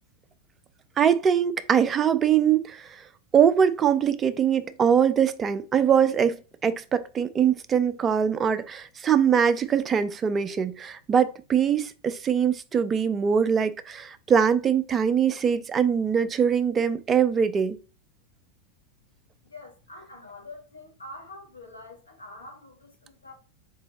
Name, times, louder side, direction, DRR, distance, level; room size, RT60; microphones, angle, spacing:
voice 1, 1.0-3.0 3.3-17.8, right 7 dB, 20° right, 0.4 m, -22 dB
voice 2, 19.4-23.3, left 2 dB, 75° left, 1.4 m, -45 dB
3.9 x 2.6 x 3.1 m
figure-of-eight pair, 90°, 0 cm